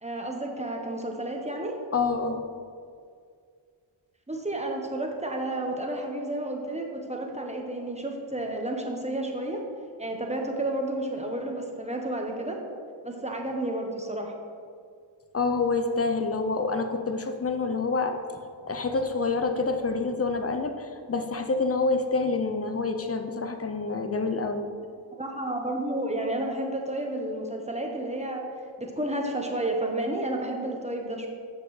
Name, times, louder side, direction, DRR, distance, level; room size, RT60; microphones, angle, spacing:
voice 1, 0.0-1.8 4.3-9.6 10.0-12.6 13.0-14.3 25.1-28.5 28.8-31.3, right 1 dB, 15° right, 1 dB, 1.2 m, -31 dB
voice 2, 1.9-2.5 15.3-18.2 18.7-24.7, left 3 dB, 30° left, 6 dB, 0.7 m, -27 dB
7.9 x 6.7 x 3.3 m, 2.2 s
cardioid pair, 55°, 48 cm